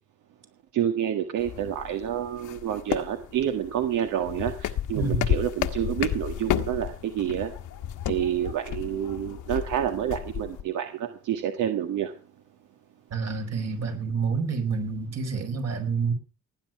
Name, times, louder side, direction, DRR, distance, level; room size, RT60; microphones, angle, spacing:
voice 1, 0.7-7.5 8.0-12.1, right 10 dB, 85° right, 6 dB, 1.7 m, -28 dB
sound 1, 1.4-10.6, left 11 dB, 80° left, 1.4 m, -32 dB
voice 2, 5.0-5.3 13.1-16.1, right 5 dB, 55° right, 6 dB, 4.9 m, -28 dB
18.0 x 9.9 x 5.9 m, 0.36 s
cardioid pair, 90°, 30 cm